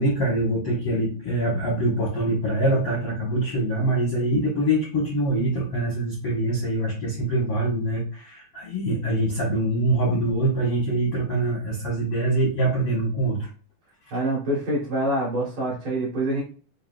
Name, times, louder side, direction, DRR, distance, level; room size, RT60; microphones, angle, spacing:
voice 1, 0.0-13.5, right 1 dB, 65° left, -5 dB, 1.4 m, -24 dB
voice 2, 14.1-16.4, right 1 dB, 60° right, -5 dB, 1.8 m, -25 dB
5.8 x 2.8 x 2.2 m, 0.40 s
omnidirectional pair, 4.2 m